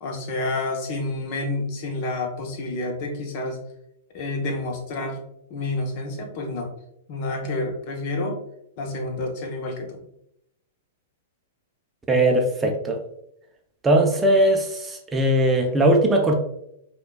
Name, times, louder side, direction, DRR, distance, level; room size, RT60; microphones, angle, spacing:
voice 1, 0.0-3.6 4.1-5.2 5.5-6.7 7.1-8.4 8.8-10.0, left 2 dB, 50° left, 3 dB, 0.8 m, -29 dB
voice 2, 12.1-13.0 13.8-16.3, right 1 dB, 15° right, 3 dB, 0.5 m, -19 dB
4.8 x 2.3 x 2.2 m, 0.75 s
hypercardioid pair, 110°, 0 cm